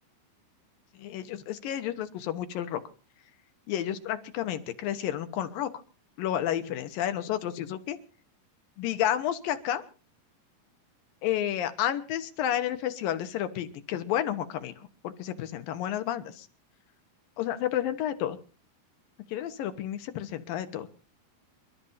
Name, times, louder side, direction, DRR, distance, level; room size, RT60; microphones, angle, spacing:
voice 1, 1.0-2.8 3.7-5.7 6.2-8.0 8.8-9.8 11.2-16.5 17.4-18.4 19.3-20.9, left 11 dB, 75° left, 10 dB, 2.8 m, -31 dB
29.0 x 12.5 x 2.7 m, 0.36 s
omnidirectional pair, 4.3 m